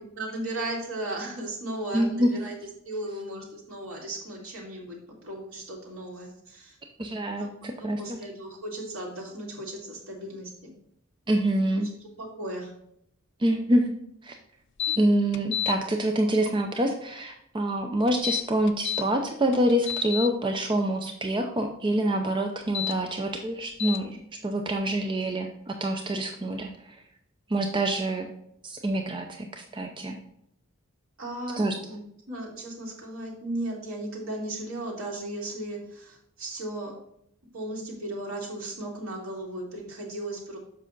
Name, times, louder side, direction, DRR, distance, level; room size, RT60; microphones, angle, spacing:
voice 1, 0.2-2.5 2.8-5.0 5.2-6.7 7.3-7.7 8.0-10.5 12.0-12.7 31.2-32.0 32.3-36.9 37.5-40.6, right 1 dB, 70° right, -3 dB, 2.7 m, -36 dB
voice 2, 1.9-2.3 7.0-8.2 11.3-11.9 13.4-13.9 14.2-14.4 15.0-26.7 27.5-28.3 28.6-30.2 31.6-31.8, right 1 dB, 25° right, 4 dB, 0.6 m, -26 dB
sound 1, 14.8-15.0 15.3-15.7 18.1-19.0 19.5-20.3 22.6-22.9 23.8-24.0, left 10 dB, 55° left, 0.5 m, -29 dB
7.5 x 5.6 x 3.9 m, 0.75 s
head